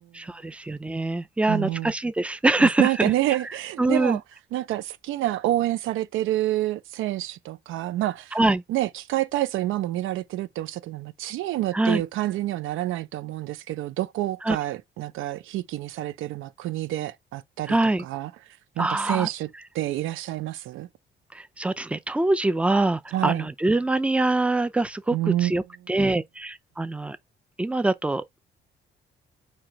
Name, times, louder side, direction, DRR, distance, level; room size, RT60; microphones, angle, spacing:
voice 1, 0.2-3.1 3.8-4.2 8.3-8.6 11.7-12.0 14.4-14.6 17.7-18.0 18.8-19.3 21.3-27.2 27.6-28.2, right 2 dB, 5° right, 0.5 m, -24 dB
voice 2, 1.5-1.9 2.6-4.2 4.5-8.4 8.7-17.8 18.0-18.3 18.8-19.5 19.7-20.9 23.1-23.5 25.1-25.5, right 14 dB, 85° right, 0.4 m, -28 dB
4.4 x 3.2 x 3.8 m
cardioid pair, 90°, 20 cm